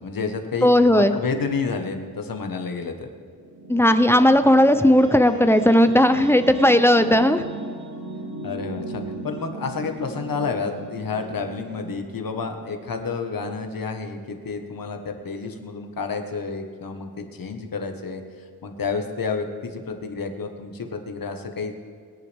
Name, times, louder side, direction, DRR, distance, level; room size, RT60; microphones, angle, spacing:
voice 1, 0.0-3.1 8.4-18.2 18.6-21.7, left 4 dB, 65° left, 5 dB, 1.4 m, -30 dB
voice 2, 0.6-1.1 3.7-7.4, left 1 dB, 5° left, 9 dB, 0.5 m, -16 dB
sound 1, 3.3-14.1, right 1 dB, 85° right, 2.0 m, -37 dB
22.5 x 10.5 x 3.5 m, 2.2 s
wide cardioid pair, 160°, 37 cm